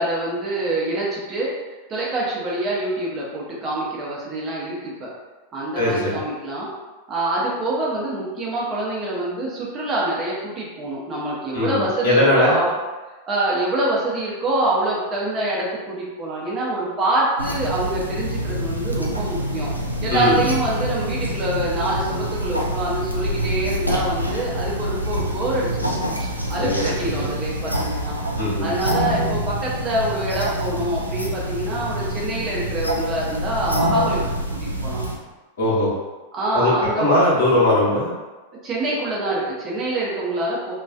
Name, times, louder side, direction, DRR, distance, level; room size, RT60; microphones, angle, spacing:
voice 1, 0.0-1.5 1.9-5.1 5.5-6.7 7.1-12.7 13.3-19.7 20.0-25.9 26.2-28.1 28.6-34.3 34.6-35.0 36.3-37.2 38.6-40.7, right 2 dB, 30° right, -5 dB, 0.7 m, -25 dB
voice 2, 5.7-6.2 11.5-12.6 20.1-20.4 26.6-27.2 28.4-28.7 35.6-35.9 36.5-36.7 37.0-38.1, left 1 dB, 65° left, -7 dB, 1.0 m, -19 dB
sound 1, 17.4-35.1, equal, 90° right, 0.3 m, -26 dB
2.4 x 2.3 x 2.3 m, 1.2 s
figure-of-eight pair, 90°, 0 cm